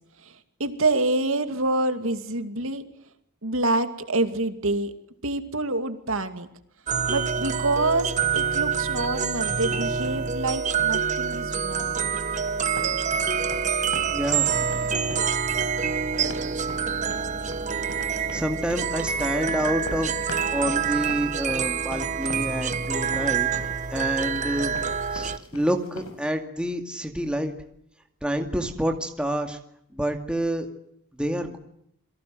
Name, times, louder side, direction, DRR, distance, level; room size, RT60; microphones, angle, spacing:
voice 1, 0.2-2.8 3.4-4.9 5.2-6.5 7.1-12.1, right 2 dB, 65° right, 8 dB, 2.5 m, -27 dB
sound 1, 6.9-25.4, right 6 dB, 35° right, 1.2 m, -26 dB
sound 2, 11.7-26.3, left 1 dB, 80° left, 6.2 m, -41 dB
voice 2, 11.7-12.2 14.1-15.3 18.3-20.1 20.5-24.8 25.1-27.5 28.2-29.6 29.9-30.7 31.2-31.6, equal, 5° right, 4 dB, 2.3 m, -28 dB
28.5 x 23.0 x 7.9 m, 0.72 s
head